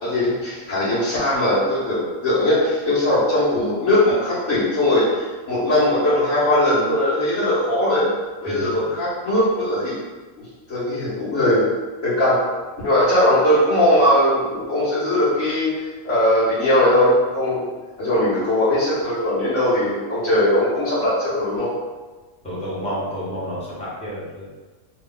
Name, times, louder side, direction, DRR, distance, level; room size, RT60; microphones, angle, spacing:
voice 1, 0.0-5.0 5.5-8.1 8.4-10.0 10.7-11.7 12.0-12.4 12.8-15.7 16.0-17.7 18.0-21.7, left 1 dB, 65° left, -13 dB, 1.5 m, -19 dB
voice 2, 22.4-24.5, equal, 5° left, -8 dB, 0.9 m, -30 dB
3.2 x 2.4 x 3.7 m, 1.3 s
omnidirectional pair, 1.4 m